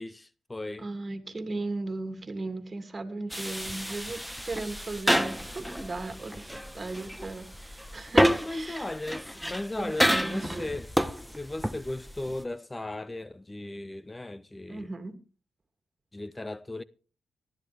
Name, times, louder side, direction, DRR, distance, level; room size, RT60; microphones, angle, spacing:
voice 1, 0.0-0.9 8.4-14.9 16.1-16.8, left 2 dB, 20° left, 0.6 m, -37 dB
voice 2, 0.8-8.9 9.8-10.7 14.7-15.1, right 2 dB, 35° right, 2.8 m, -37 dB
sound 1, 3.3-12.5, equal, ahead, 1.1 m, -29 dB
18.5 x 13.0 x 3.5 m
supercardioid pair, 55°, 0 cm